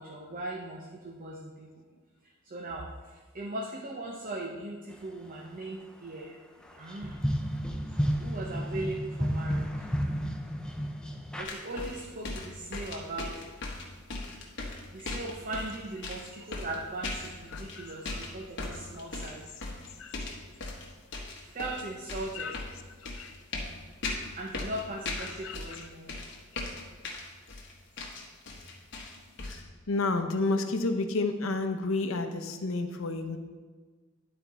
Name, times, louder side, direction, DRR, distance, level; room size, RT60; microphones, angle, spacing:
voice 1, 0.0-1.7 2.5-2.9 3.3-6.4 6.8-7.2 8.0-9.7 11.4-13.3 14.9-19.5 21.5-22.5 24.4-26.1, right 2 dB, 40° right, -1 dB, 0.7 m, -39 dB
sound 1, 6.7-11.4, equal, 5° left, 0.5 m, -31 dB
sound 2, 11.4-17.8 18.1-20.9 21.1-25.8 26.1-29.6, left 2 dB, 60° left, 1.3 m, -38 dB
voice 2, 17.5-17.9 20.0-20.1 22.3-22.7 23.2-23.3 25.2-25.9 29.5-33.4, left 3 dB, 80° left, 7 dB, 0.7 m, -31 dB
11.0 x 4.4 x 4.1 m, 1.4 s
head